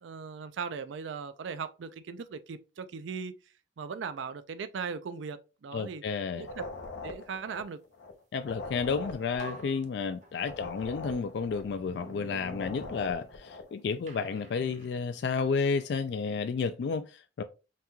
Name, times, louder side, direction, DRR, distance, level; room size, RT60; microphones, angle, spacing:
voice 1, 0.0-3.3 3.8-6.0 6.4-6.6 7.0-7.8, right 5 dB, 85° right, 0.4 m, -38 dB
voice 2, 5.7-6.5 8.3-17.4, left 5 dB, 65° left, 0.3 m, -31 dB
sound 1, 6.4-13.7, left 3 dB, 80° left, 0.7 m, -43 dB
sound 2, 8.8-8.9 9.4-10.7 11.3-13.7 14.1-15.9, right 2 dB, 40° right, 0.6 m, -48 dB
5.7 x 2.3 x 3.0 m
head